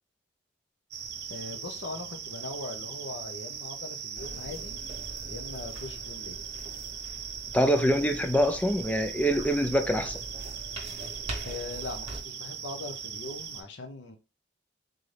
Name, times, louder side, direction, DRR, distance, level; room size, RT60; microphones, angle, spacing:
sound 1, 0.9-13.6, right 7 dB, 55° right, 0.6 m, -39 dB
voice 1, 1.3-4.8 5.3-6.4 11.4-14.2, left 3 dB, 70° left, 0.7 m, -40 dB
sound 2, 4.2-12.2, right 2 dB, 30° right, 0.9 m, -43 dB
voice 2, 7.5-10.2, equal, 5° left, 0.3 m, -25 dB
3.8 x 2.7 x 3.2 m
head